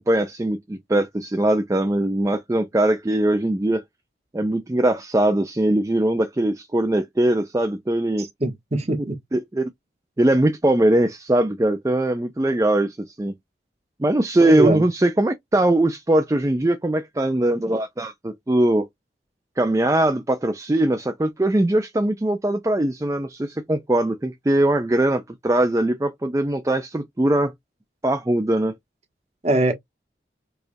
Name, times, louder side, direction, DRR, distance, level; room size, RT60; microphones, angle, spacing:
voice 1, 0.0-3.8 4.3-8.3 9.3-9.7 10.2-13.3 14.0-18.9 19.6-27.5 28.0-28.7, right 1 dB, 15° right, 0.4 m, -21 dB
voice 2, 8.2-9.2 14.4-14.8 29.4-29.7, right 2 dB, 35° right, 1.0 m, -22 dB
5.0 x 2.4 x 2.6 m
head